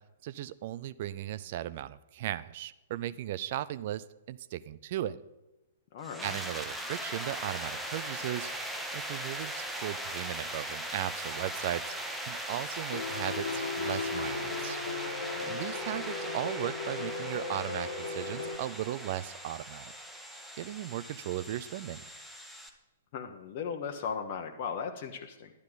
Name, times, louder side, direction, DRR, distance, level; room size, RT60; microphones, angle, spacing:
voice 1, 0.2-5.2 6.2-8.5 8.9-12.0 12.2-14.8 15.5-19.9 20.6-22.0, right 13 dB, 50° right, 16 dB, 0.5 m, -37 dB
voice 2, 5.9-6.4 15.3-15.6 23.1-25.5, left 6 dB, 45° left, 4 dB, 1.1 m, -37 dB
sound 1, 6.0-22.7, right 1 dB, 5° right, 1.3 m, -39 dB
Piano, 12.9-18.6, left 4 dB, 70° left, 1.4 m, -37 dB
11.5 x 11.0 x 4.0 m, 1.0 s
figure-of-eight pair, 115°, 0 cm